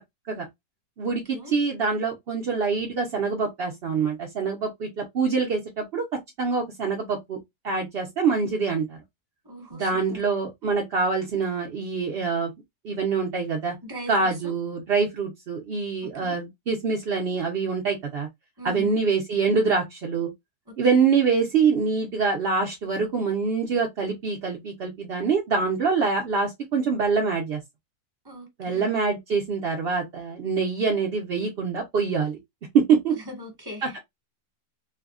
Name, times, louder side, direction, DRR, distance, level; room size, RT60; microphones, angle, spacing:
voice 1, 1.0-6.0 6.4-7.4 7.6-9.0 9.7-12.5 12.8-13.7 14.1-18.3 18.6-20.3 20.8-27.6 28.6-32.4 32.7-33.1 33.8-34.0, right 5 dB, 65° right, 0.6 m, -25 dB
voice 2, 9.4-10.2 13.8-14.5 16.2-16.4 18.6-19.0 20.9-21.1 28.2-28.8 33.1-34.0, left 1 dB, 15° right, 1.2 m, -40 dB
3.3 x 2.2 x 2.3 m
omnidirectional pair, 1.8 m